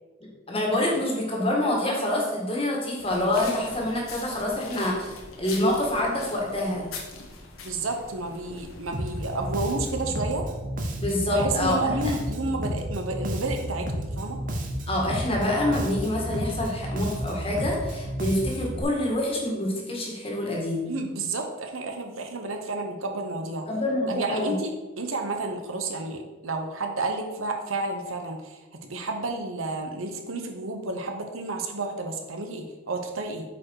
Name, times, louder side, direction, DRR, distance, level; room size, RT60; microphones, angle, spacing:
voice 1, 0.2-6.9 11.0-12.1 14.9-20.9 23.7-24.5, left 1 dB, 25° left, -1 dB, 1.8 m, -26 dB
sound 1, 3.0-10.0, left 3 dB, 85° left, 1.4 m, -43 dB
voice 2, 7.6-10.4 11.1-14.4 20.8-23.7 24.1-28.6 28.9-33.4, right 2 dB, 75° right, 4 dB, 1.1 m, -31 dB
Bass guitar, 8.9-18.8, equal, 40° right, 1.0 m, -32 dB
8.2 x 5.2 x 4.7 m, 1.2 s
head